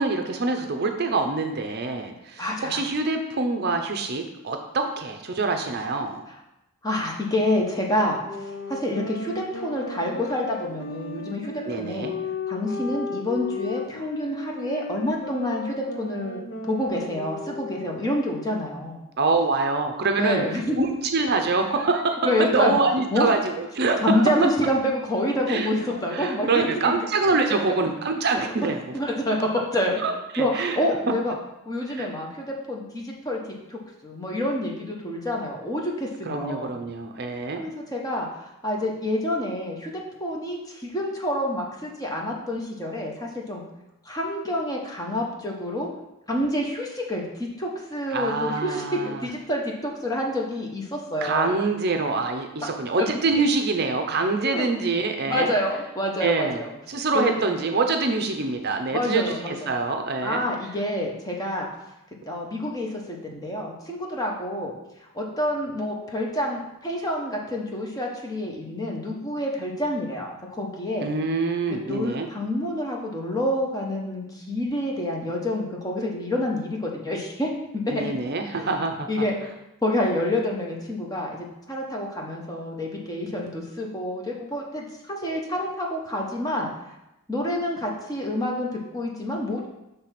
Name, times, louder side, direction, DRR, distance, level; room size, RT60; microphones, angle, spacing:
voice 1, 0.0-6.2 11.7-12.1 19.2-20.4 20.8-24.3 25.5-25.7 26.1-29.0 30.0-30.8 31.9-32.1 36.3-37.6 48.1-49.2 51.2-55.5 56.2-56.6 56.9-60.5 71.0-72.3 77.9-79.1, right 3 dB, 50° right, 5 dB, 0.6 m, -25 dB
voice 2, 2.4-2.8 6.8-12.1 12.5-16.4 16.7-19.0 20.2-20.8 22.2-22.7 23.1-23.3 24.0-26.9 28.4-28.5 28.9-31.3 31.7-33.4 33.7-36.7 37.6-43.6 44.0-45.9 46.3-51.6 54.4-54.7 55.2-56.7 57.1-57.3 58.9-59.8 60.2-61.7 62.3-64.7 65.1-71.1 71.7-77.9 78.6-78.7 79.1-79.4 79.8-86.7 87.3-89.7, left 1 dB, 15° left, -1 dB, 1.0 m, -28 dB
sound 1, 8.2-18.2, left 3 dB, 55° left, 0.7 m, -35 dB
6.6 x 3.4 x 5.8 m, 0.91 s
head